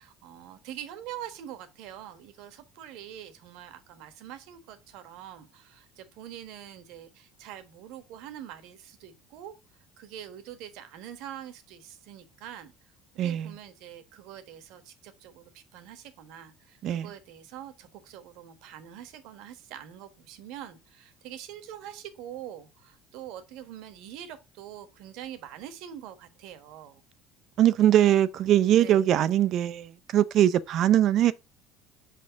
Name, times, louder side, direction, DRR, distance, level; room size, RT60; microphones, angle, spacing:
voice 1, 0.0-9.5 10.0-12.7 13.2-27.0 28.7-29.1, right 10 dB, 75° right, 1.2 m, -44 dB
voice 2, 13.2-13.5 16.8-17.1 27.6-31.3, right 11 dB, 60° right, 0.5 m, -22 dB
4.9 x 4.3 x 5.6 m
supercardioid pair, 85°, 0 cm